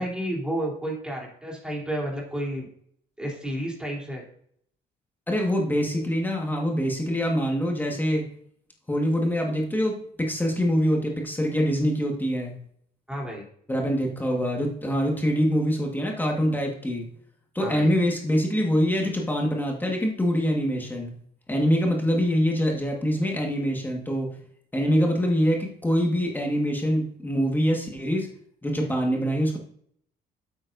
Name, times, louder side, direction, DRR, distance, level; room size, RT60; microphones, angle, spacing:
voice 1, 0.0-2.7 3.2-4.2 13.1-13.5 17.6-17.9, right 1 dB, 5° right, -2 dB, 3.4 m, -31 dB
voice 2, 5.3-8.3 8.9-12.5 13.7-17.1 17.5-21.1 21.5-24.4 24.7-28.3 28.6-29.6, equal, 10° left, 0 dB, 1.6 m, -24 dB
9.4 x 8.1 x 2.6 m, 0.65 s
cardioid pair, 110°, 17 cm